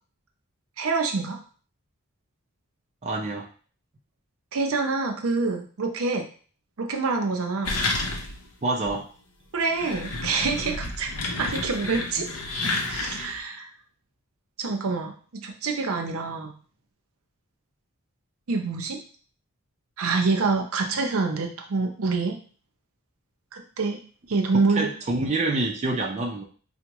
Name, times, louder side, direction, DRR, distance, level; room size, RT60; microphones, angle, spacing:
voice 1, 0.8-1.4 4.5-6.2 6.8-7.7 9.5-11.1 11.4-12.3 12.9-13.7 14.6-16.5 18.5-19.0 20.0-22.4 23.5-24.0 24.3-24.9, right 4 dB, 75° right, 3 dB, 0.6 m, -26 dB
voice 2, 3.0-3.5 8.6-9.1 24.7-26.4, right 2 dB, 30° right, 0 dB, 0.4 m, -27 dB
sound 1, 7.6-8.5 8.9-9.0 9.6-13.4, left 2 dB, 85° left, 0.7 m, -30 dB
4.4 x 2.1 x 2.9 m, 0.42 s
head